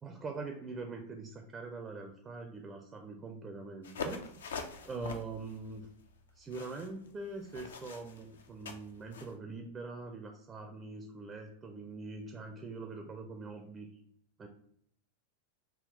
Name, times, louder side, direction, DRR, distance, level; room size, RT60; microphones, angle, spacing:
voice 1, 0.0-4.3 4.8-5.9 6.3-13.9 14.4-14.5, right 3 dB, 20° right, 4 dB, 0.4 m, -43 dB
sound 1, 3.8-9.3, left 5 dB, 65° left, 0.3 m, -44 dB
3.5 x 2.3 x 3.6 m, 0.69 s
figure-of-eight pair, 90°, 0 cm